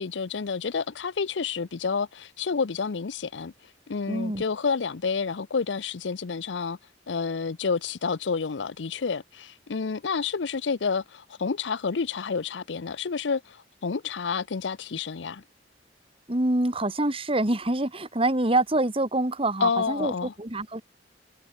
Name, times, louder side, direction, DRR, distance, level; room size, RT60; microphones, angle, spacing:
voice 1, 0.0-3.5 3.9-6.8 7.1-15.4 19.6-20.3, left 5 dB, 90° left, 0.6 m, -29 dB
voice 2, 4.1-4.4 16.3-20.8, right 2 dB, 30° right, 2.5 m, -26 dB
head